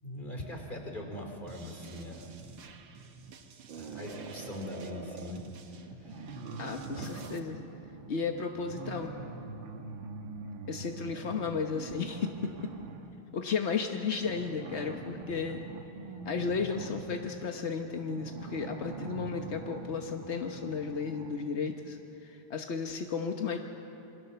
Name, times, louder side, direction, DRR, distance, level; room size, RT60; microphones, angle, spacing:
voice 1, 0.0-2.4 3.7-5.4 6.0-6.2 7.0-7.1, left 1 dB, 20° left, 2 dB, 3.4 m, -41 dB
sound 1, 1.5-7.4, right 5 dB, 80° right, 2.3 m, -52 dB
sound 2, 3.7-5.4 6.0-13.2 14.2-21.6, right 4 dB, 60° right, 2.1 m, -44 dB
voice 2, 6.6-7.7 8.1-9.1 10.7-12.5 13.3-15.6 16.2-23.6, left 5 dB, 45° left, 4 dB, 0.9 m, -34 dB
27.0 x 24.5 x 6.9 m, 2.9 s
omnidirectional pair, 2.4 m